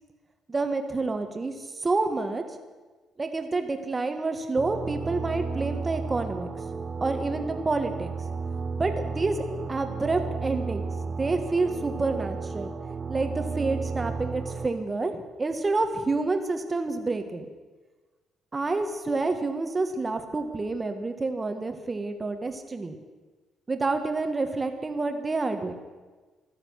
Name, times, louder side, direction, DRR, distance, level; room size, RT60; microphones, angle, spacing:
voice 1, 0.5-2.4 3.2-6.5 7.0-8.1 8.8-10.9 11.2-12.7 13.1-17.5 18.5-23.0 23.7-25.7, right 3 dB, 25° right, 7 dB, 1.6 m, -28 dB
sound 1, 4.6-14.7, right 4 dB, 40° right, 1.1 m, -33 dB
15.0 x 12.5 x 6.5 m, 1.3 s
cardioid pair, 115°, 0 cm